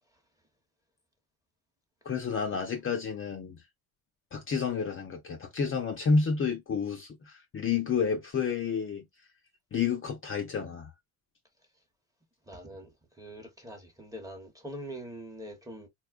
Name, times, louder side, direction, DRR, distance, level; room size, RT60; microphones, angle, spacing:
voice 1, 2.0-3.6 4.3-9.1 9.7-10.9, left 5 dB, 35° left, 0.6 m, -30 dB
voice 2, 12.5-12.9 13.2-15.9, right 1 dB, 10° right, 0.9 m, -43 dB
4.1 x 2.3 x 2.3 m
cardioid pair, 110°, 39 cm